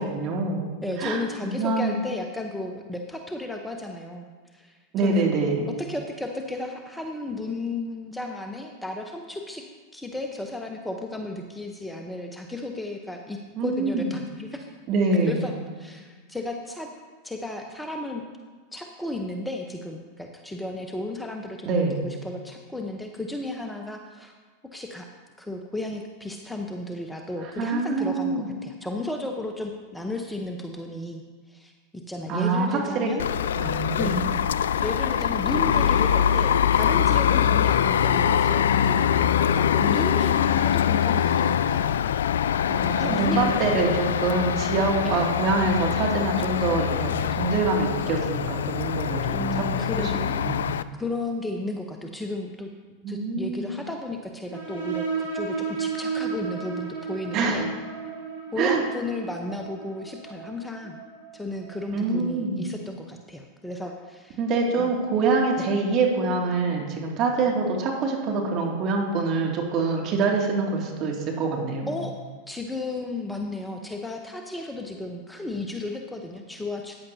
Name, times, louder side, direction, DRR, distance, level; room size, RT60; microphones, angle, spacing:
voice 1, 0.0-2.0 4.9-5.7 13.6-14.1 14.9-15.4 21.6-22.0 27.4-28.5 32.3-33.1 33.6-34.3 42.7-50.7 53.0-53.7 57.3-57.6 58.6-58.8 61.9-62.6 64.4-71.9, right 3 dB, 45° right, -1 dB, 2.4 m, -25 dB
voice 2, 0.8-5.3 5.8-9.6 9.9-14.7 15.3-16.9 17.2-18.2 18.7-24.3 24.7-25.1 25.4-31.2 31.5-31.7 32.1-33.2 33.9-34.2 34.8-41.9 43.0-43.4 45.0-45.3 49.3-50.3 50.6-52.7 53.1-57.6 58.5-61.0 61.3-64.4 64.8-64.9 65.6-65.7 70.0-70.1 71.9-72.2 72.5-76.9, left 2 dB, 5° left, 3 dB, 0.9 m, -34 dB
sound 1, 33.2-50.8, left 9 dB, 75° left, 0.3 m, -23 dB
sound 2, 54.5-61.8, right 5 dB, 70° right, 3.1 m, -33 dB
14.0 x 9.5 x 2.8 m, 1.5 s
hypercardioid pair, 95°, 0 cm